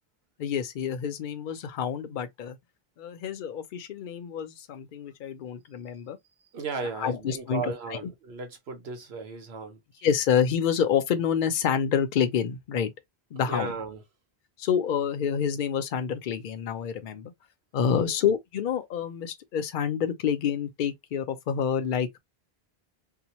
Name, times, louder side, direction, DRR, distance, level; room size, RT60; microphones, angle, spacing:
voice 1, 0.4-2.6 3.0-6.2 7.0-8.1 10.0-12.9 13.3-13.7 14.6-17.3 17.7-22.2, left 7 dB, 60° left, 0.6 m, -28 dB
voice 2, 6.5-9.8 13.4-14.0 17.8-18.1, right 4 dB, 80° right, 1.1 m, -35 dB
2.8 x 2.0 x 2.9 m
omnidirectional pair, 1.0 m